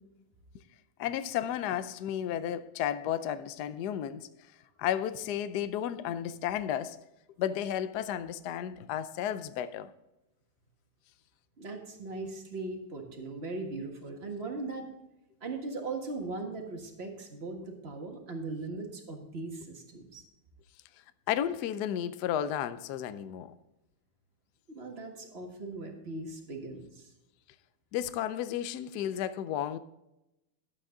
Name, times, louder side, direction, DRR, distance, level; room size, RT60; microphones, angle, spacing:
voice 1, 1.0-4.3 4.8-7.0 7.4-9.9 21.3-23.5 27.9-29.8, left 10 dB, 70° left, 12 dB, 1.0 m, -33 dB
voice 2, 11.6-14.9 15.4-20.2 24.7-27.1, right 3 dB, 30° right, 2 dB, 1.6 m, -39 dB
12.0 x 8.5 x 3.8 m, 0.90 s
omnidirectional pair, 2.3 m